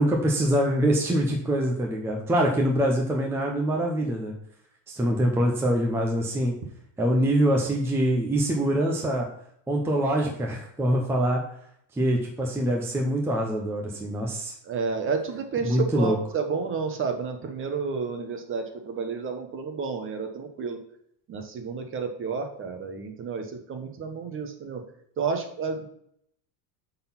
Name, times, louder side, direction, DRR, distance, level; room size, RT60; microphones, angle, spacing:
voice 1, 0.0-4.3 4.9-6.5 7.0-9.3 9.7-11.4 11.9-14.5 15.6-16.2, right 1 dB, 5° right, 0 dB, 0.7 m, -24 dB
voice 2, 14.6-20.8 21.3-24.8 25.2-25.9, right 5 dB, 25° right, 5 dB, 1.0 m, -31 dB
8.3 x 4.1 x 5.7 m, 0.68 s
cardioid pair, 160°, 49 cm